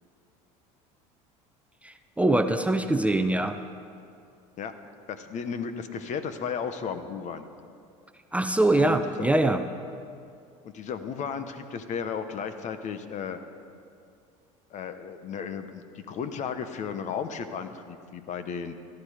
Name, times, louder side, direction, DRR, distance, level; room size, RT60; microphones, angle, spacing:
voice 1, 1.8-3.6 8.3-9.6, right 2 dB, 10° right, 7 dB, 0.7 m, -23 dB
voice 2, 5.1-7.5 8.7-9.3 10.6-13.4 14.7-18.7, left 6 dB, 45° left, 10 dB, 1.1 m, -34 dB
17.5 x 13.0 x 5.1 m, 2.4 s
supercardioid pair, 100°, 16 cm